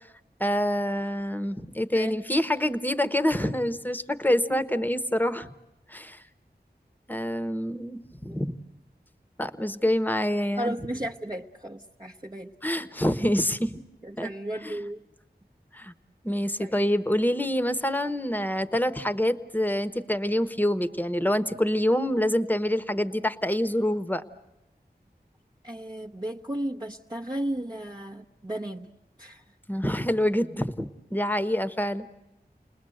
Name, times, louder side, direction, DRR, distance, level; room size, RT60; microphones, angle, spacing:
voice 1, 0.4-5.5 5.9-6.2 7.1-8.5 9.4-10.7 12.6-13.8 14.2-14.3 14.6-14.8 15.7-15.9 16.2-24.2 29.7-32.1, left 1 dB, 10° left, 11 dB, 1.2 m, -26 dB
voice 2, 4.3-4.6 8.3-8.4 10.6-12.5 14.0-15.0 16.6-16.8 25.6-29.4, right 1 dB, 25° right, -1 dB, 1.0 m, -34 dB
29.5 x 20.5 x 7.9 m, 0.91 s
wide cardioid pair, 60°, 17 cm